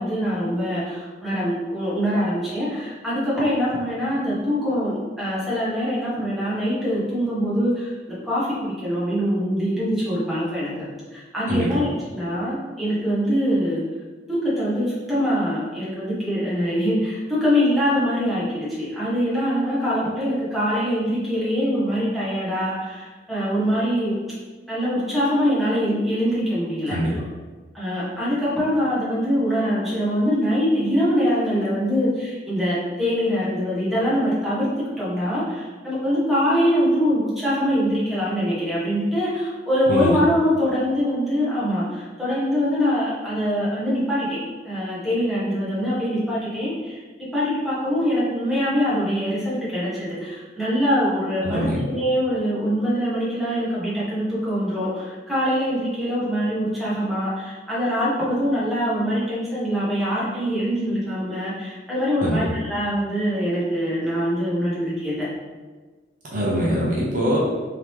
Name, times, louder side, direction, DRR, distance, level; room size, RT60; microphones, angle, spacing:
voice 1, 0.0-10.8 11.1-13.8 14.3-24.2 24.7-27.2 27.7-44.4 44.6-65.3, equal, ahead, -10 dB, 1.2 m, -23 dB
voice 2, 39.9-40.2 51.4-51.8 62.2-62.5 66.3-67.4, equal, 45° right, -5 dB, 0.6 m, -23 dB
3.7 x 2.8 x 3.1 m, 1.4 s
head